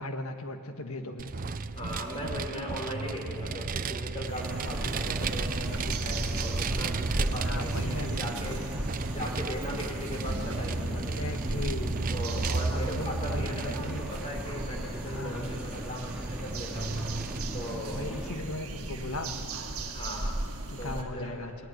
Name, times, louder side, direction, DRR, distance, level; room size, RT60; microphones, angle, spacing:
voice 1, 0.0-1.5 7.4-8.5 10.9-12.1 12.7-14.0 15.1-15.6 18.0-19.4 20.7-21.5, left 2 dB, 75° left, 6 dB, 1.6 m, -38 dB
Vehicle, 1.2-18.1, right 4 dB, 40° right, 0.6 m, -34 dB
voice 2, 1.7-8.8 9.1-11.4 12.1-17.0 17.5-18.1 19.8-20.4 20.8-21.4, equal, 25° left, 0 dB, 3.6 m, -38 dB
sound 1, 4.3-21.0, right 1 dB, 75° right, 1.9 m, -36 dB
sound 2, 4.4-18.4, equal, 5° right, 2.6 m, -41 dB
19.5 x 17.5 x 9.4 m, 2.4 s
head